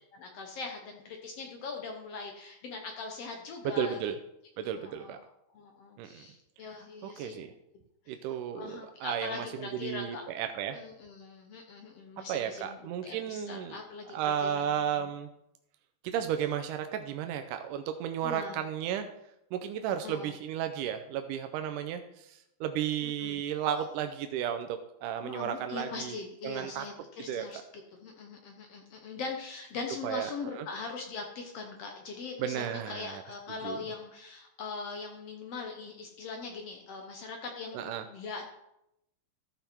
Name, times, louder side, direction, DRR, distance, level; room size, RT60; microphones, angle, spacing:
voice 1, 0.0-4.0 4.6-7.5 8.1-8.3 8.5-10.2 10.7-12.8 13.0-15.1 18.2-18.6 20.0-20.3 23.0-23.4 25.2-27.6 28.0-38.4, left 4 dB, 65° left, 3 dB, 1.6 m, -41 dB
voice 2, 3.8-4.2 4.6-5.2 6.0-6.3 7.0-7.5 8.1-10.8 12.3-13.8 14.1-15.3 16.0-19.1 19.5-26.9 27.3-27.5 30.0-30.7 32.4-33.2 33.6-33.8 37.7-38.0, right 9 dB, 90° right, 7 dB, 2.2 m, -34 dB
13.5 x 5.3 x 4.4 m, 0.83 s
omnidirectional pair, 3.6 m